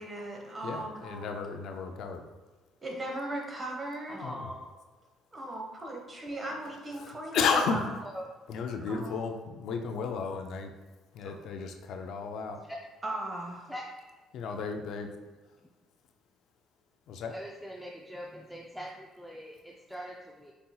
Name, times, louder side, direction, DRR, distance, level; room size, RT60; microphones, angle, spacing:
voice 1, 0.0-1.3 2.8-4.2 5.3-7.8 8.9-9.1 13.0-13.7, right 1 dB, 30° right, 0 dB, 1.0 m, -37 dB
voice 2, 0.6-2.2 4.2-4.5 7.0-7.8 8.5-10.7 11.1-12.6 14.3-15.1 17.1-17.3, left 5 dB, 70° left, 5 dB, 0.4 m, -33 dB
voice 3, 4.1-4.7 8.1-8.2 12.7-12.8 13.7-14.0 17.3-20.5, equal, ahead, -2 dB, 0.4 m, -42 dB
5.4 x 2.8 x 2.3 m, 1.3 s
supercardioid pair, 80°, 0 cm